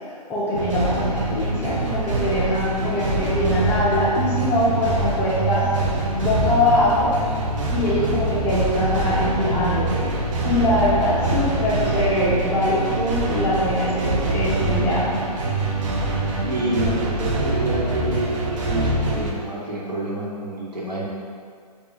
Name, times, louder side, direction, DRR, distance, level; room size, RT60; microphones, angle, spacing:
voice 1, 0.3-5.7 6.2-7.1 7.7-10.1 10.4-15.2, left 1 dB, 10° left, -8 dB, 0.6 m, -22 dB
sound 1, 0.5-19.3, right 2 dB, 50° right, 0.6 m, -24 dB
voice 2, 16.5-18.3 18.6-21.1, right 1 dB, 85° right, -6 dB, 1.2 m, -28 dB
4.9 x 2.4 x 2.9 m, 2.1 s
hypercardioid pair, 140°, 21 cm